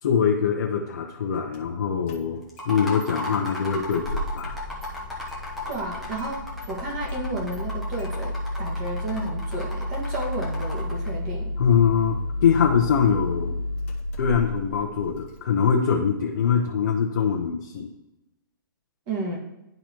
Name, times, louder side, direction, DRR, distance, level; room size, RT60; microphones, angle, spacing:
voice 1, 0.0-4.6 11.6-13.6 14.2-17.9, left 7 dB, 55° left, 0 dB, 0.8 m, -23 dB
Engine starting, 1.5-1.6 2.1-2.7 3.0-3.1 3.5-15.4, left 1 dB, 35° left, 1.0 m, -32 dB
sound 1, 2.5-11.1, left 2 dB, ahead, 0.9 m, -36 dB
voice 2, 5.7-11.5 19.1-19.4, right 2 dB, 25° right, -2 dB, 1.6 m, -32 dB
11.5 x 4.0 x 3.0 m, 0.94 s
hypercardioid pair, 170°, 12 cm